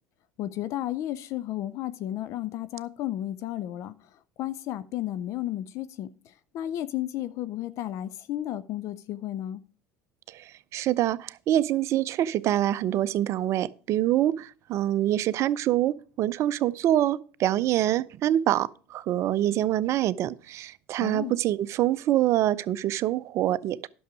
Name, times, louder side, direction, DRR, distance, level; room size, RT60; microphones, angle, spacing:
voice 1, 0.4-3.9 4.4-9.6 21.0-21.3, left 13 dB, 55° left, 0.5 m, -33 dB
voice 2, 10.3-23.9, right 13 dB, 50° right, 0.5 m, -25 dB
11.0 x 6.3 x 4.9 m
hypercardioid pair, 75°, 6 cm